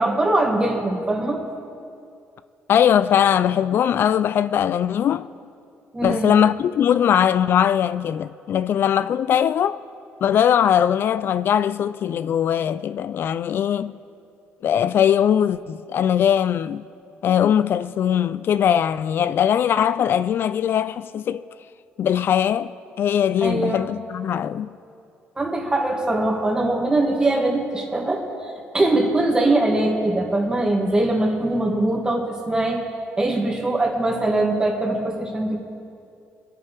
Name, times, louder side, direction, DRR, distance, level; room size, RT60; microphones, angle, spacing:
voice 1, 0.0-1.4 5.9-6.3 23.4-23.9 25.4-28.2 28.7-32.8 33.2-35.6, right 2 dB, 15° right, 2.1 m, -22 dB
voice 2, 2.7-5.3 6.0-9.8 10.2-14.0 14.6-16.8 17.2-21.4 22.0-22.7 23.0-24.7, left 9 dB, 55° left, 0.3 m, -20 dB
24.0 x 9.3 x 3.4 m
cardioid pair, 115°, 5 cm